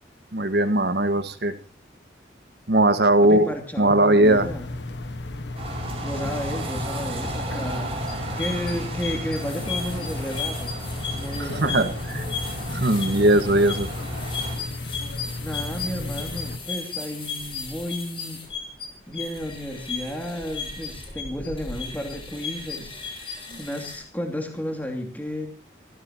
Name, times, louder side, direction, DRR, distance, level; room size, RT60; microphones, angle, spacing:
voice 1, 0.3-1.5 2.7-3.5 3.8-4.5 11.6-12.2 12.7-13.9 23.5-23.6, right 1 dB, 60° right, 9 dB, 1.7 m, -19 dB
voice 2, 3.2-4.7 6.0-10.8 11.1-11.9 15.4-18.4 19.1-25.5, equal, 10° left, 3 dB, 2.7 m, -33 dB
sound 1, 4.2-16.6, left 2 dB, 70° left, 1.4 m, -34 dB
sound 2, 5.6-14.6, right 1 dB, 35° right, 5.5 m, -34 dB
sound 3, 8.1-24.0, left 5 dB, 30° left, 6.8 m, -35 dB
27.5 x 16.0 x 3.0 m, 0.36 s
head